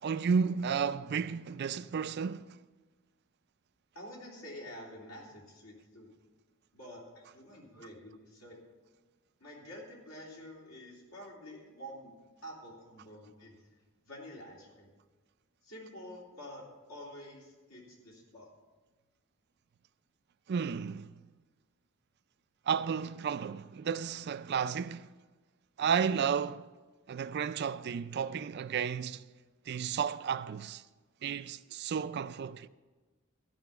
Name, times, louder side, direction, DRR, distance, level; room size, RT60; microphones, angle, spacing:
voice 1, 0.0-2.6 20.5-21.1 22.7-25.1 25.8-26.7 27.1-29.2 29.7-30.8 31.2-32.7, right 6 dB, 50° right, 0.4 m, -32 dB
voice 2, 3.9-6.1 6.7-8.6 9.4-12.1 12.4-13.5 14.1-14.9 15.6-18.5, equal, 85° left, 3.2 m, -48 dB
14.0 x 5.7 x 7.0 m
head